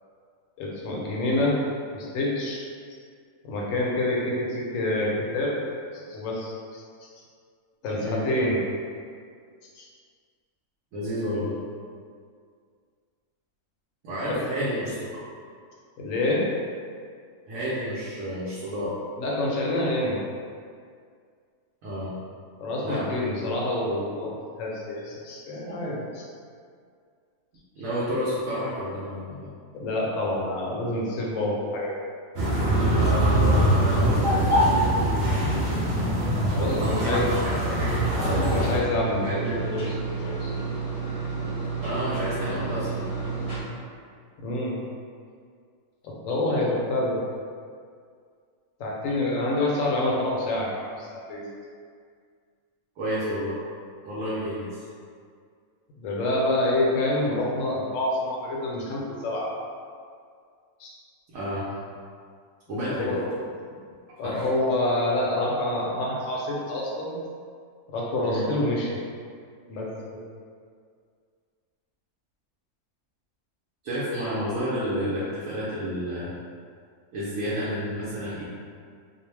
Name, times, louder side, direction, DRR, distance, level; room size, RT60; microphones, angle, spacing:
voice 1, 0.6-1.6 1.9-2.6 3.4-5.6 5.9-6.8 7.8-8.6 9.7-9.9 14.2-14.4 16.0-16.4 19.2-20.2 22.6-26.2 29.7-31.9 36.5-37.3 38.3-39.9 40.2-40.5 44.4-44.7 46.0-47.2 48.8-51.5 56.0-59.5 60.8-60.9 62.9-63.2 64.2-67.1 67.9-69.0 69.7-70.2, left 1 dB, 70° left, -4 dB, 0.9 m, -27 dB
voice 2, 10.9-11.6 14.0-15.2 17.5-18.9 21.8-22.1 22.8-23.4 27.8-29.5 32.9-35.0 36.6-38.7 39.2-39.7 41.8-43.1 53.0-53.6 54.0-54.8 61.3-61.7 62.7-63.2 64.2-64.5 68.2-68.5 73.8-76.3 77.1-78.5, equal, 75° right, -9 dB, 1.0 m, -30 dB
sound 1, 32.3-38.8, right 1 dB, 60° right, 0.7 m, -23 dB
sound 2, 37.7-43.6, right 4 dB, 40° right, 1.0 m, -31 dB
2.6 x 2.0 x 3.1 m, 2.1 s
omnidirectional pair, 1.5 m